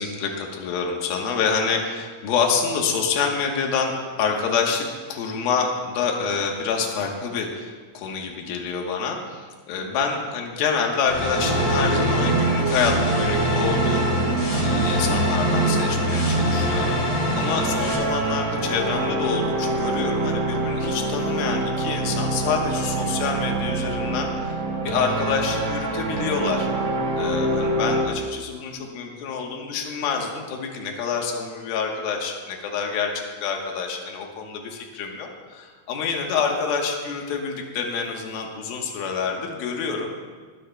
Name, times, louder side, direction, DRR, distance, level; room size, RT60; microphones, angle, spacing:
voice 1, 0.0-14.1 14.6-17.0 17.4-24.6 24.8-26.7 27.2-40.1, left 5 dB, 80° left, 1 dB, 2.1 m, -27 dB
sound 1, 11.1-17.9, left 1 dB, 35° left, 3.1 m, -26 dB
sound 2, 11.3-28.0, right 2 dB, 85° right, 1.3 m, -25 dB
20.0 x 13.0 x 2.2 m, 1.5 s
omnidirectional pair, 5.9 m